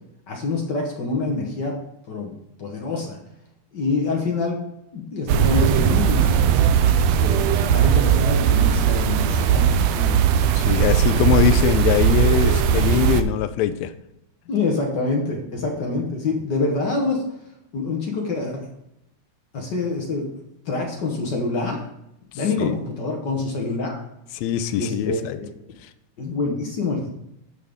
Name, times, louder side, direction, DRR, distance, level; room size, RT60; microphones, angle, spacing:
voice 1, 0.3-1.8 2.1-2.3 2.6-3.2 3.7-6.6 7.2-10.3 14.5-17.2 17.7-18.7 19.5-20.3 20.6-21.8 22.3-24.0 24.8-25.5 26.2-27.1, left 3 dB, 65° left, 0 dB, 1.0 m, -26 dB
sound 1, 5.3-13.2, right 8 dB, 80° right, 1.5 m, -18 dB
voice 2, 10.5-13.9 22.6-22.7 24.3-25.4, left 10 dB, 80° left, 12 dB, 1.7 m, -22 dB
13.0 x 5.6 x 3.5 m, 0.82 s
omnidirectional pair, 3.5 m